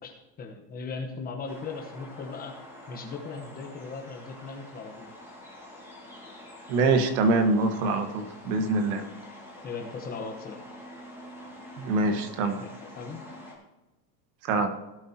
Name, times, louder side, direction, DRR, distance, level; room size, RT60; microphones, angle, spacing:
voice 1, 0.0-2.5 2.9-5.1 8.6-8.9 9.6-10.6 12.1-12.2 12.6-13.2 14.6-14.7, left 4 dB, 20° left, 3 dB, 1.0 m, -38 dB
sound 1, 1.5-13.6, left 1 dB, 5° right, 2.2 m, -46 dB
voice 2, 6.7-9.0 11.8-12.6 14.5-14.7, right 3 dB, 60° right, 7 dB, 1.6 m, -24 dB
17.0 x 8.2 x 2.9 m, 1.1 s
cardioid pair, 180°, 47 cm